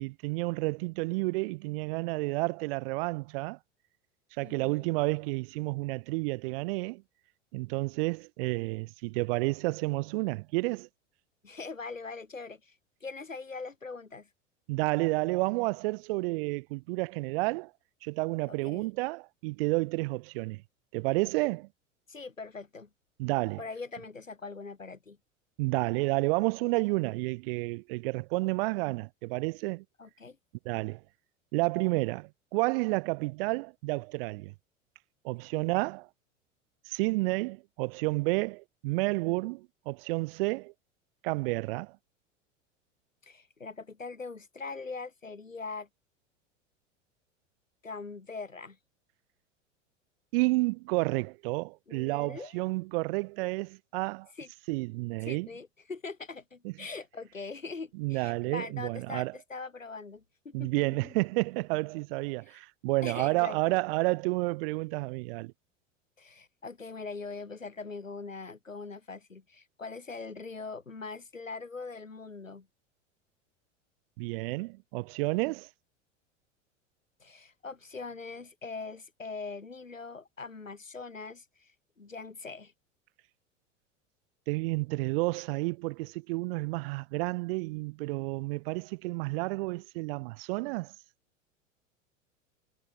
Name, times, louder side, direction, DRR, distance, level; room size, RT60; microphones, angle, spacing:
voice 1, 0.0-3.6 4.4-7.0 7.5-10.9 14.7-17.7 18.0-20.6 20.9-21.7 23.2-23.6 25.6-29.8 30.6-31.0 31.5-34.5 35.2-36.1 36.8-40.7 41.2-42.0 50.3-54.3 54.7-55.5 56.6-56.7 58.0-59.3 60.5-65.5 74.2-75.7 84.5-90.9, right 24 dB, 50° right, 1.1 m, -30 dB
voice 2, 4.4-4.9 11.4-14.3 18.5-18.9 22.1-22.9 23.6-25.2 30.0-30.4 43.2-45.9 47.8-48.8 51.9-52.6 54.4-54.5 55.2-61.1 62.5-62.6 63.0-63.8 66.2-72.7 77.2-82.7, left 4 dB, 85° left, 1.5 m, -42 dB
figure-of-eight pair, 85°, 38 cm